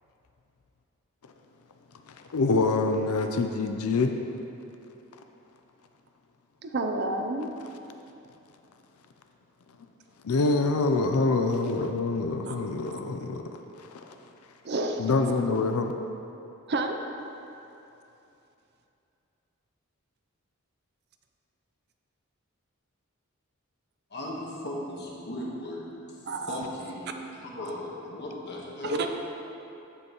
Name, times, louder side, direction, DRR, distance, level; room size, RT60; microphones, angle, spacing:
voice 1, 2.3-4.1 10.2-13.4 13.8-14.1 15.0-15.9, left 3 dB, 80° left, 5 dB, 0.5 m, -25 dB
voice 2, 6.6-7.5 12.5-12.6 14.6-15.1 16.7-17.0 26.3-26.6 28.8-29.1, right 2 dB, 50° right, 5 dB, 0.5 m, -29 dB
voice 3, 24.1-27.1 27.4-29.0, left 1 dB, 50° left, -3 dB, 1.3 m, -37 dB
14.5 x 5.4 x 3.0 m, 2.8 s
head